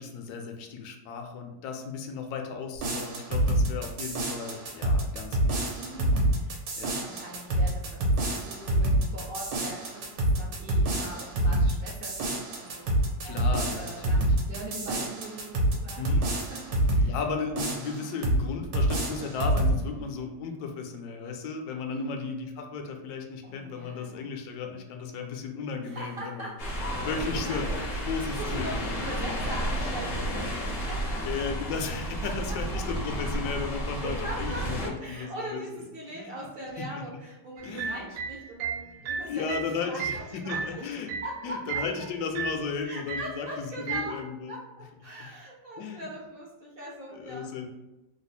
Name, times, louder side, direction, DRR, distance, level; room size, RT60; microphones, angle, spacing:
voice 1, 0.0-5.8 6.7-6.9 13.2-14.3 15.9-16.2 17.0-26.5 27.0-28.9 31.2-35.6 36.1-36.3 36.8-36.9 37.6-38.0 39.3-41.1 41.4-44.6 45.8-46.1 47.2-47.7, left 5 dB, 75° left, 4 dB, 1.1 m, -35 dB
sound 1, 2.8-17.1 17.6-18.4 18.7-19.8, right 1 dB, 90° right, 1.4 m, -27 dB
voice 2, 5.8-6.7 7.0-12.9 13.2-13.4 13.7-17.1 18.0-18.1 19.8-20.0 21.9-22.3 23.4-24.2 25.8-31.3 32.2-32.8 33.2-33.3 34.0-40.8 41.2-41.8 42.8-44.2 44.5-47.7, right 1 dB, 55° right, -3 dB, 0.6 m, -41 dB
sound 2, 26.6-34.9, equal, 50° left, 0.7 m, -32 dB
sound 3, 37.6-41.4 41.7-42.0 42.3-42.7 43.1-43.4 43.9-44.2, right 6 dB, 70° right, 1.0 m, -34 dB
3.2 x 2.1 x 4.1 m, 0.98 s
omnidirectional pair, 1.9 m